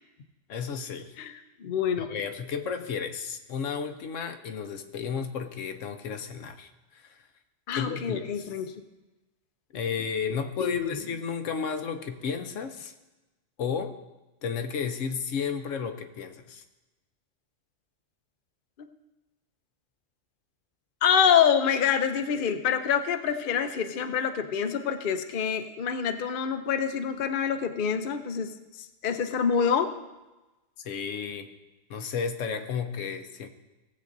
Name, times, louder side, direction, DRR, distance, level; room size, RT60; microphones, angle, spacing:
voice 1, 0.5-1.1 2.0-7.2 7.8-8.5 9.7-12.9 13.6-14.0 14.4-16.6 30.8-31.5 31.9-33.5, left 6 dB, 75° left, 7 dB, 1.1 m, -33 dB
voice 2, 1.6-2.1 7.7-8.7 10.6-11.0 21.0-28.5 28.8-29.9, left 7 dB, 50° left, 7 dB, 0.7 m, -26 dB
18.0 x 7.5 x 2.6 m, 1.1 s
omnidirectional pair, 1.3 m